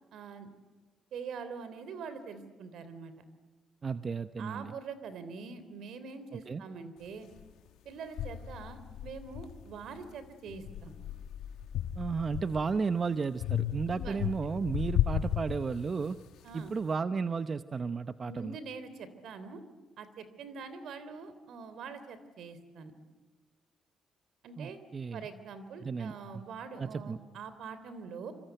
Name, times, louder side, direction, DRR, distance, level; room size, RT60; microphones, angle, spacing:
voice 1, 0.1-0.5 1.1-3.1 4.4-7.3 7.8-10.9 13.9-14.2 16.4-16.7 18.2-19.6 20.0-22.9 24.4-24.8 25.1-28.3, right 5 dB, 75° right, 12 dB, 3.2 m, -44 dB
voice 2, 3.8-4.7 6.5-6.6 12.0-16.2 16.5-18.6 24.6-25.2 25.8-26.4 26.8-27.2, right 5 dB, 40° right, 11 dB, 0.8 m, -33 dB
sound 1, 7.4-7.5 8.2-10.0 10.5-12.8 13.4-16.2, left 10 dB, 85° left, 1.3 m, -34 dB
26.0 x 25.0 x 9.1 m, 1.3 s
cardioid pair, 90°, 0 cm